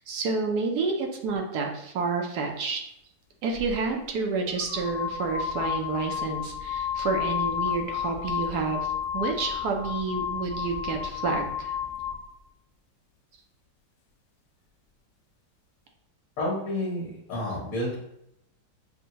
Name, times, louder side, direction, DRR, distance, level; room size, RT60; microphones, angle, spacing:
voice 1, 0.0-2.8 3.4-11.7, right 4 dB, 70° right, 2 dB, 1.1 m, -29 dB
sound 1, 3.6-3.7 4.5-12.3, left 8 dB, 70° left, 0.8 m, -31 dB
voice 2, 16.4-18.0, left 1 dB, 55° left, -4 dB, 1.3 m, -30 dB
6.1 x 2.1 x 2.8 m, 0.78 s
omnidirectional pair, 1.9 m